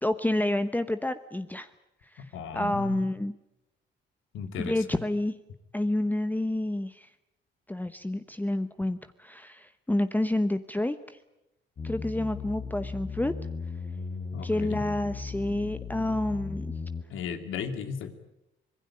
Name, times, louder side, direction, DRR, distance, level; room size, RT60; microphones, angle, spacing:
voice 1, 0.0-1.7 2.1-2.2 2.5-3.3 4.6-5.4 5.7-7.1 7.7-11.2 11.8-13.3 14.4-16.7, left 1 dB, 10° left, 10 dB, 1.0 m, -29 dB
voice 2, 2.2-3.1 4.3-4.8 14.3-14.8 17.1-18.1, left 6 dB, 80° left, 8 dB, 2.6 m, -36 dB
sound 1, 11.8-17.0, left 5 dB, 50° left, 4.5 m, -36 dB
25.5 x 19.0 x 8.7 m, 0.89 s
cardioid pair, 90°, 20 cm